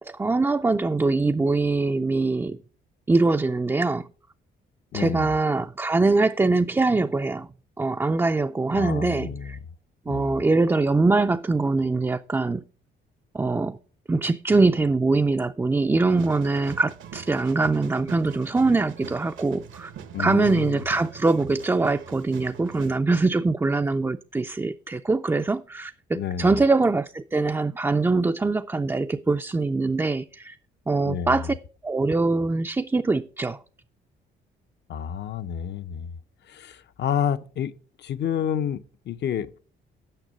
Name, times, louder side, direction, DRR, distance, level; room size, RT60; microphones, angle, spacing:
voice 1, 0.0-2.6 3.1-4.1 4.9-7.5 7.8-9.6 10.1-12.6 13.3-13.8 14.1-19.9 20.2-30.6 30.9-31.6 31.8-33.6, right 3 dB, 10° right, 0.3 m, -23 dB
voice 2, 4.9-5.3 8.7-9.6 10.1-10.4 20.1-20.8 26.1-26.6 31.0-31.5 34.9-36.1 36.5-37.7 38.0-39.6, left 9 dB, 60° left, 0.6 m, -29 dB
sound 1, 16.1-23.0, right 8 dB, 75° right, 1.0 m, -42 dB
9.0 x 6.2 x 5.2 m
cardioid pair, 90°, 20 cm